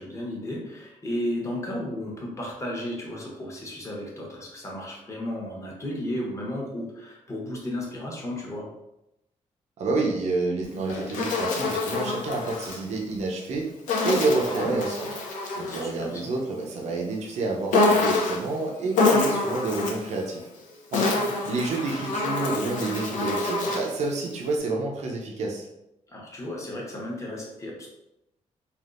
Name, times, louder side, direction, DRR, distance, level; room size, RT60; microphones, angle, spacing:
voice 1, 0.0-8.7 14.3-14.8 15.6-16.3 21.0-21.3 26.1-27.9, left 1 dB, 25° left, -2 dB, 0.9 m, -34 dB
voice 2, 9.8-13.7 14.0-15.1 15.6-20.5 20.9-21.2 21.5-25.7, right 3 dB, 65° right, -1 dB, 0.5 m, -29 dB
Insect, 10.6-12.8 13.9-16.0 17.7-18.5 18.9-20.1 20.7-24.0, left 3 dB, 90° left, 0.6 m, -26 dB
3.4 x 2.3 x 2.4 m, 0.88 s
cardioid pair, 100°, 13 cm